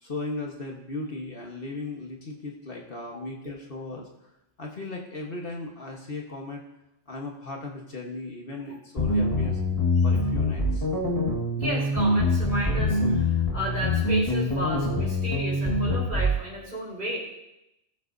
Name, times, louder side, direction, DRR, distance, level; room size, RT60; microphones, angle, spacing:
voice 1, 0.0-4.3 4.6-6.6 7.1-9.6 10.0-10.9, left 2 dB, 50° left, 0 dB, 1.5 m, -37 dB
sound 1, 9.0-16.4, left 1 dB, 30° left, 1.7 m, -24 dB
voice 2, 11.6-17.2, equal, 40° right, -5 dB, 4.0 m, -33 dB
19.0 x 7.5 x 2.7 m, 0.85 s
omnidirectional pair, 1.2 m